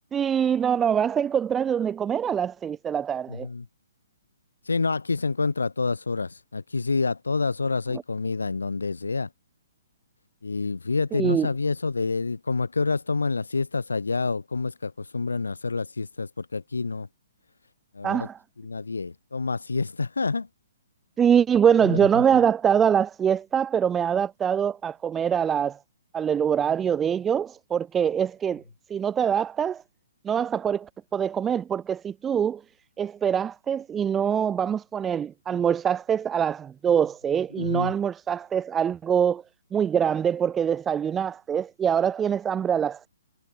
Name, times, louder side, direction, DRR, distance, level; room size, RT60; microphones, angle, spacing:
voice 1, 0.1-3.5 11.1-11.5 18.0-18.4 21.2-25.8 26.1-28.6 28.9-29.8 30.2-32.6 33.0-39.4 39.7-43.1, right 8 dB, 15° right, 1.0 m, -24 dB
voice 2, 3.3-3.7 4.7-9.3 10.4-17.1 17.9-18.3 18.6-20.5 21.8-22.2 37.6-37.9, left 4 dB, 75° left, 3.4 m, -28 dB
figure-of-eight pair, 125°, 0 cm